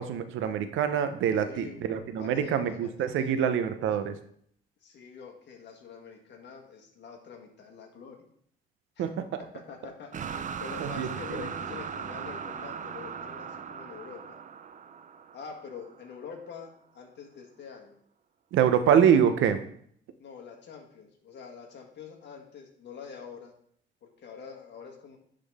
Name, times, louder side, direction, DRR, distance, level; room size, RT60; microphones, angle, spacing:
voice 1, 0.0-4.2 9.0-9.4 10.8-11.4 18.5-19.6, right 8 dB, 85° right, 10 dB, 0.7 m, -25 dB
voice 2, 1.4-1.8 2.2-3.4 4.8-8.3 9.0-9.1 9.5-10.1 10.6-14.4 15.3-18.0 20.2-23.5 24.0-25.2, left 6 dB, 60° left, 2 dB, 1.6 m, -45 dB
sound 1, 10.1-16.2, right 7 dB, 40° right, 0.5 m, -39 dB
10.0 x 3.8 x 3.5 m, 0.64 s
cardioid pair, 90°, 20 cm